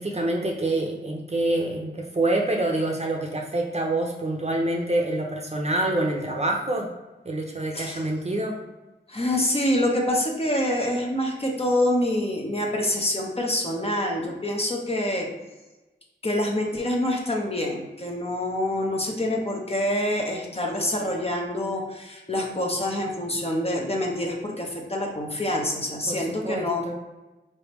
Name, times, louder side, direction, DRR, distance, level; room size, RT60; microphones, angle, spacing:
voice 1, 0.0-6.9 7.2-8.6 26.1-27.0, right 1 dB, 35° right, 0 dB, 0.7 m, -26 dB
voice 2, 9.1-15.3 16.2-26.8, left 1 dB, 30° left, 0 dB, 0.9 m, -26 dB
4.4 x 3.4 x 3.1 m, 1.1 s
wide cardioid pair, 75°, 19 cm